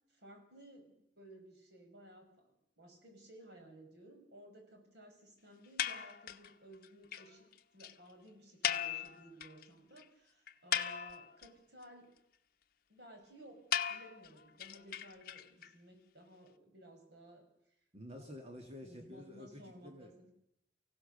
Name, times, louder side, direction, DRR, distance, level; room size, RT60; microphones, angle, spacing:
voice 1, 0.1-7.5 7.7-12.1 12.9-13.6 13.9-17.5 18.1-18.3 18.8-20.3, right 1 dB, 70° right, 4 dB, 5.7 m, -57 dB
sound 1, 5.8-6.5 6.8-6.9 7.1-7.2 7.5-7.6 7.8-7.9 8.6-9.6 10.0-10.1 10.5-11.5 13.7-15.7, left 9 dB, 55° left, 1.0 m, -37 dB
voice 2, 17.9-20.3, left 1 dB, 35° right, 2 dB, 2.1 m, -50 dB
24.5 x 16.5 x 6.8 m, 0.80 s
head